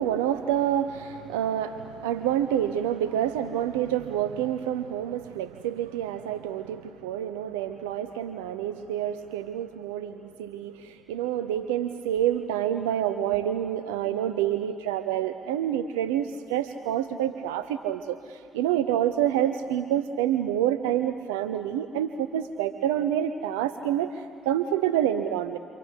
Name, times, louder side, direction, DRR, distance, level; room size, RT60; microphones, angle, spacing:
voice 1, 0.0-25.6, right 10 dB, 85° right, 10 dB, 0.7 m, -28 dB
28.5 x 25.5 x 8.2 m, 2.2 s
hypercardioid pair, 50°, 0 cm